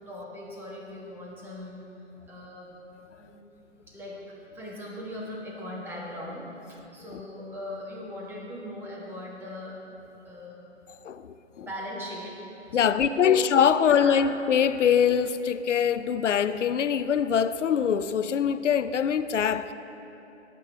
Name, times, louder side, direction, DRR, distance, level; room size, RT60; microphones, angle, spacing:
voice 1, 0.1-1.9 2.3-2.7 3.2-9.8 10.2-10.6 11.6-14.3, left 1 dB, 5° right, -4 dB, 1.2 m, -39 dB
voice 2, 11.0-11.7 12.7-19.7, left 8 dB, 80° left, 12 dB, 0.5 m, -23 dB
18.0 x 7.6 x 3.3 m, 2.9 s
figure-of-eight pair, 135°, 36 cm